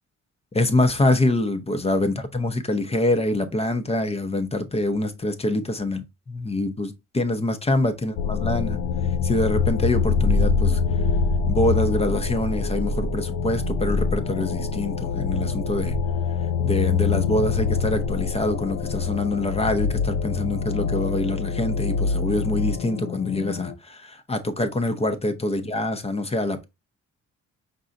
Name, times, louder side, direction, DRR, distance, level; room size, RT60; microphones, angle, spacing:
voice 1, 0.5-6.0 6.4-8.8 9.2-10.8 11.5-16.0 16.6-26.6, left 2 dB, 20° left, 0.7 m, -25 dB
sound 1, 8.2-23.7, left 5 dB, 70° left, 0.6 m, -25 dB
5.4 x 3.9 x 2.5 m
cardioid pair, 90°, 30 cm